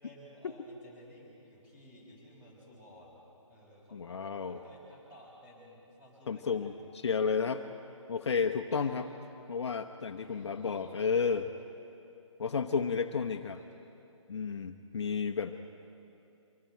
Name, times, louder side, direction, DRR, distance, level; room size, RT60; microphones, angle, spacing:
voice 1, 0.0-6.6 8.7-9.0 10.2-11.2 13.5-13.7, equal, 10° right, -4 dB, 5.6 m, -55 dB
voice 2, 3.9-4.6 6.3-6.7 7.0-7.6 8.1-9.1 9.5-11.5 12.4-13.6 14.3-15.7, left 5 dB, 60° left, 6 dB, 0.9 m, -32 dB
24.5 x 23.0 x 4.6 m, 2.8 s
figure-of-eight pair, 150°, 17 cm